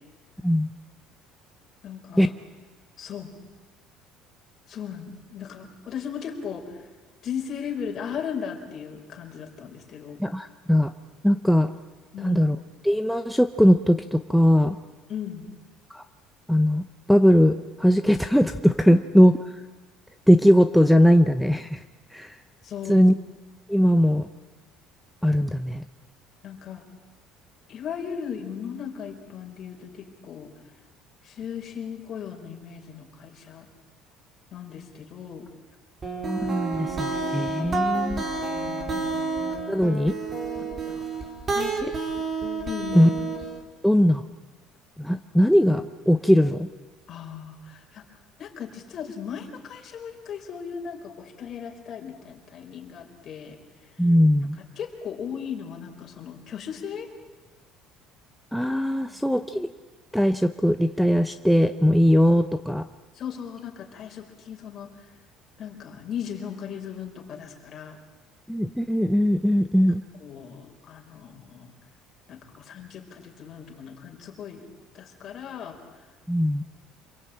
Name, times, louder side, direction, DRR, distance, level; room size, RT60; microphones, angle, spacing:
voice 1, 1.8-2.3 3.0-3.4 4.7-6.9 7.2-10.2 12.1-12.4 15.1-15.5 18.9-19.0 22.6-23.1 26.4-26.9 27.7-30.5 31.2-33.7 34.5-35.5 38.4-39.3 40.6-41.1 41.5-41.9 42.7-43.1 47.1-48.1 48.4-54.0 54.4-57.1 59.0-59.2 63.1-65.1 65.6-68.0 70.2-71.8 72.3-74.6 74.9-76.1, left 7 dB, 40° left, 2 dB, 5.0 m, -37 dB
voice 2, 10.2-10.9 11.2-11.7 12.2-12.6 12.8-14.8 15.9-16.0 16.5-16.8 17.1-19.3 20.3-21.8 22.1-22.4 22.9-23.1 23.7-24.3 25.2-25.8 36.2-38.2 39.7-40.2 42.9-43.1 43.8-44.2 45.0-46.7 54.0-54.6 58.5-59.7 60.1-62.8 68.5-70.0 76.3-76.6, equal, ahead, 7 dB, 0.8 m, -20 dB
sound 1, 36.0-43.6, right 4 dB, 25° right, 4.4 m, -29 dB
27.0 x 22.5 x 8.8 m, 1.3 s
cardioid pair, 135°, 0 cm